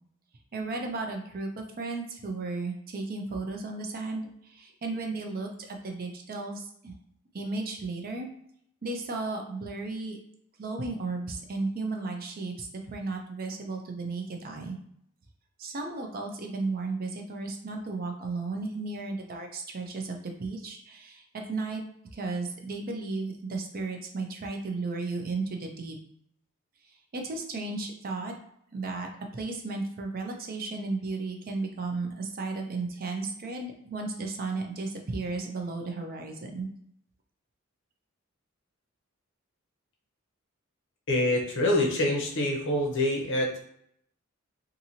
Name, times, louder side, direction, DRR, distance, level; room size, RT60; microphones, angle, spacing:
voice 1, 0.5-6.9 7.3-8.3 8.8-10.2 10.6-14.8 15.6-21.8 22.1-26.0 27.1-28.3 28.7-36.7, right 3 dB, 45° right, 3 dB, 0.5 m, -34 dB
voice 2, 41.1-43.6, left 1 dB, 60° left, 1 dB, 0.7 m, -26 dB
2.7 x 2.6 x 2.7 m, 0.70 s
head